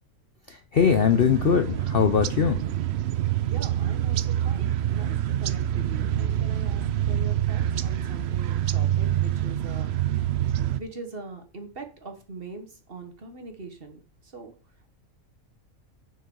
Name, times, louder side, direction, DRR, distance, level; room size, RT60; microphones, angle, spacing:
voice 1, 0.5-2.6, left 7 dB, 55° left, 8 dB, 0.6 m, -21 dB
sound 1, 0.8-10.8, right 11 dB, 65° right, 0.7 m, -26 dB
voice 2, 3.4-9.9 10.4-14.5, right 3 dB, 40° right, 5 dB, 1.5 m, -42 dB
7.3 x 6.0 x 5.4 m, 0.38 s
omnidirectional pair, 1.5 m